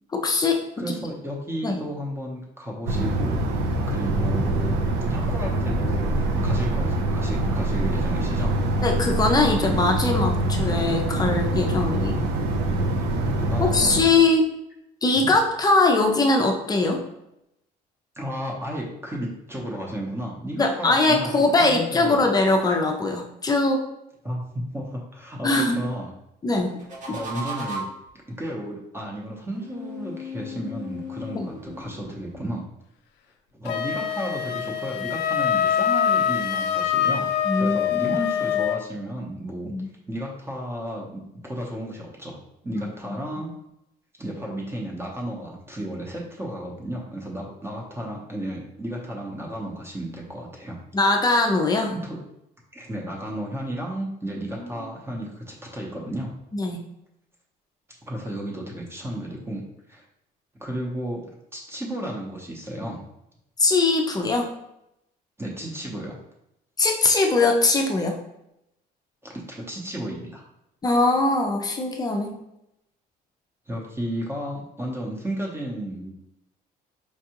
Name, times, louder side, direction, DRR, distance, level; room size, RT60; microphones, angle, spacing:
voice 1, 0.1-0.6 0.9-1.0 1.6-1.8 8.8-12.2 13.6-14.4 15.0-17.0 20.5-23.8 25.4-25.8 26.4-26.8 27.1-27.2 31.3-31.5 37.4-38.2 39.6-39.9 42.7-42.8 43.1-43.2 50.9-51.9 54.5-54.7 56.5-56.8 63.6-64.5 66.8-68.2 70.8-72.3, left 3 dB, 20° left, 3 dB, 0.5 m, -21 dB
voice 2, 0.8-3.5 3.9-8.5 13.3-14.2 15.2-15.3 18.2-21.3 21.6-22.2 24.2-26.1 27.1-27.9 28.4-32.6 33.5-37.3 37.6-39.7 40.1-43.5 44.2-50.8 51.9-52.2 52.7-56.3 58.1-59.6 59.9-60.0 60.6-63.0 65.4-66.2 69.2-70.4 73.7-76.1, right 1 dB, 15° right, -2 dB, 0.8 m, -33 dB
sound 1, 2.9-14.0, right 1 dB, 80° right, 0.6 m, -24 dB
sound 2, 26.7-28.1 29.5-32.4, left 1 dB, 50° right, 1.0 m, -36 dB
Wind instrument woodwind instrument, 33.7-38.8, left 9 dB, 85° left, 0.4 m, -24 dB
4.5 x 2.3 x 2.9 m, 0.82 s
cardioid pair, 110°, 17 cm